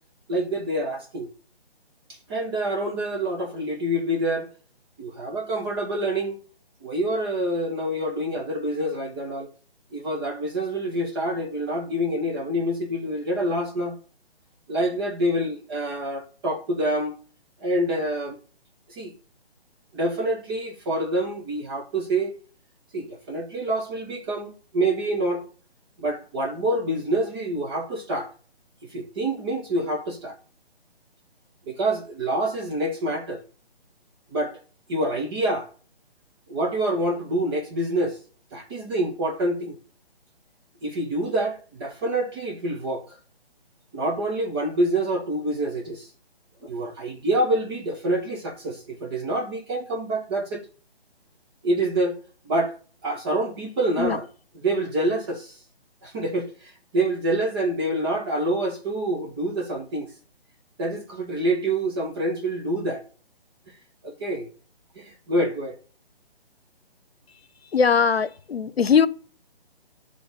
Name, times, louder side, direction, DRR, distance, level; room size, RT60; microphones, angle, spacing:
voice 1, 0.3-1.3 2.1-4.5 5.0-6.4 6.8-9.5 9.9-14.0 14.7-17.2 17.6-18.4 18.9-19.1 19.9-22.3 22.9-25.4 26.0-28.3 28.9-30.4 31.7-33.4 34.3-34.6 34.9-35.7 36.5-38.2 38.5-39.8 40.8-43.2 43.9-46.1 46.6-50.6 51.6-52.2 52.4-52.8 53.0-54.2 54.6-55.6 56.0-60.1 60.8-63.0 64.0-64.5 64.9-65.8, right 1 dB, 25° right, 1.2 m, -26 dB
voice 2, 67.7-69.1, left 6 dB, 75° left, 0.8 m, -20 dB
10.0 x 3.4 x 6.8 m
figure-of-eight pair, 145°, 31 cm